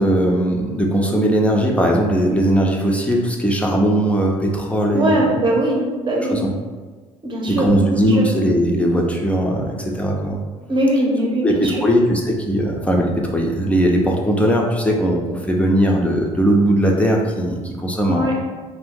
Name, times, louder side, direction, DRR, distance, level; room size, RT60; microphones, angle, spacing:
voice 1, 0.0-5.3 6.3-6.5 7.5-10.4 11.4-18.3, right 1 dB, 5° left, -1 dB, 0.6 m, -19 dB
voice 2, 4.9-6.4 7.2-8.2 10.7-11.8 18.1-18.4, right 1 dB, 30° right, -1 dB, 0.9 m, -20 dB
2.7 x 2.5 x 3.7 m, 1.4 s
hypercardioid pair, 55°, 17 cm